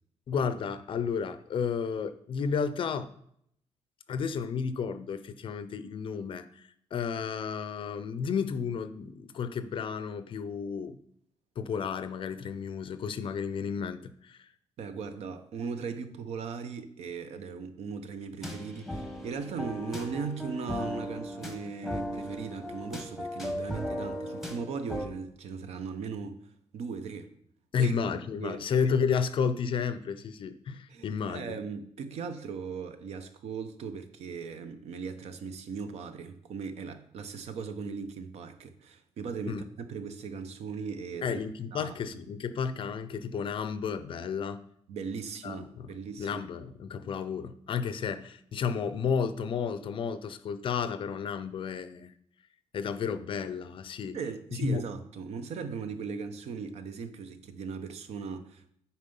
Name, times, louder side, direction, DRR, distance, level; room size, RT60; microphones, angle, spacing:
voice 1, 0.3-3.1 4.1-11.0 11.6-14.5 27.7-31.6 39.5-39.7 41.2-44.6 45.4-52.2 52.7-54.2 54.5-54.9, left 6 dB, 50° left, 0.4 m, -32 dB
voice 2, 14.8-26.4 26.7-27.3 27.8-28.0 28.4-28.6 30.9-41.4 41.7-42.0 44.9-46.4 54.1-58.7, right 5 dB, 70° right, 0.8 m, -38 dB
sound 1, 18.4-25.0, equal, ahead, 1.0 m, -37 dB
9.2 x 4.3 x 5.3 m
cardioid pair, 160°, 11 cm